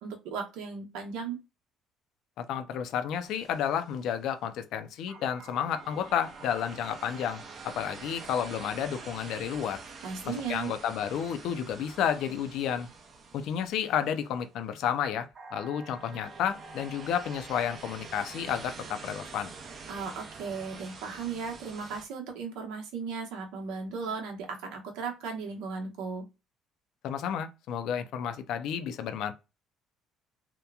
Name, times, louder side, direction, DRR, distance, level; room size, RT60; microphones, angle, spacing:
voice 1, 0.0-1.4 10.0-10.7 19.9-26.3, right 5 dB, 90° right, 0.9 m, -36 dB
voice 2, 2.4-9.8 10.2-12.9 13.3-19.5 27.0-29.3, left 8 dB, 70° left, 0.4 m, -31 dB
sound 1, 3.2-4.3 5.1-14.5 15.3-22.1, right 4 dB, 40° right, 0.5 m, -46 dB
2.8 x 2.2 x 2.3 m
cardioid pair, 130°, 0 cm